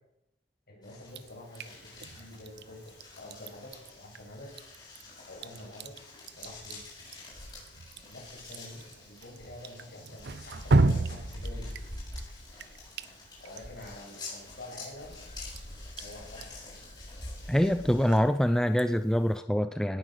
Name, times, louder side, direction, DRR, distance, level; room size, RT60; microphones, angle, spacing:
voice 1, 0.7-4.5 5.3-6.0 6.3-6.8 8.1-12.0 13.4-15.3 15.9-16.8, left 1 dB, 60° left, -2 dB, 7.8 m, -47 dB
sound 1, 0.8-18.2, left 2 dB, 25° left, 7.9 m, -46 dB
Drip, 1.1-19.4, right 2 dB, 60° right, 0.8 m, -36 dB
voice 2, 17.5-20.0, equal, 5° left, 10 dB, 0.5 m, -25 dB
18.0 x 10.0 x 6.6 m, 0.81 s
head